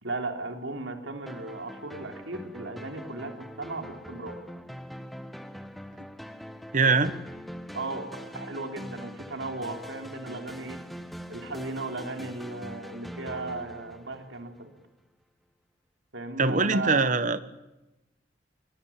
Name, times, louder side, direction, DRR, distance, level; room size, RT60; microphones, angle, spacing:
voice 1, 0.0-3.3 3.6-4.4 7.7-10.8 11.3-14.7 16.1-17.1, right 2 dB, 90° right, 5 dB, 3.6 m, -36 dB
sound 1, 1.3-14.8, equal, ahead, 1.5 m, -43 dB
voice 2, 6.7-7.1 16.4-17.4, right 4 dB, 45° right, 13 dB, 1.3 m, -22 dB
25.0 x 22.5 x 8.7 m, 0.99 s
head